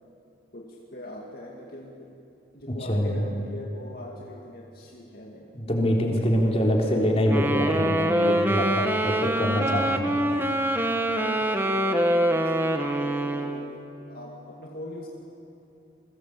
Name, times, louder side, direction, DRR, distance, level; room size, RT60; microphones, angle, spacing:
voice 1, 0.5-2.2 2.5-5.5 6.3-6.9 11.1-13.7 14.1-15.1, left 1 dB, 50° left, -1 dB, 2.2 m, -42 dB
voice 2, 2.7-3.2 5.5-10.2, equal, 35° left, 0 dB, 3.8 m, -25 dB
Wind instrument woodwind instrument, 7.3-13.7, right 1 dB, 10° right, 1.4 m, -24 dB
28.5 x 21.5 x 8.4 m, 2.8 s
head